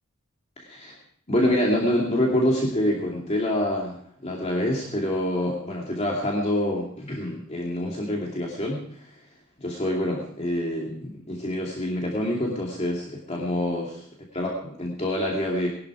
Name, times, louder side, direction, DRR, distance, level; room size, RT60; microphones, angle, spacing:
voice 1, 0.6-1.0 1.3-9.2 9.6-14.1 14.3-15.7, left 1 dB, 30° left, -2 dB, 2.5 m, -26 dB
20.5 x 11.5 x 4.9 m, 0.65 s
head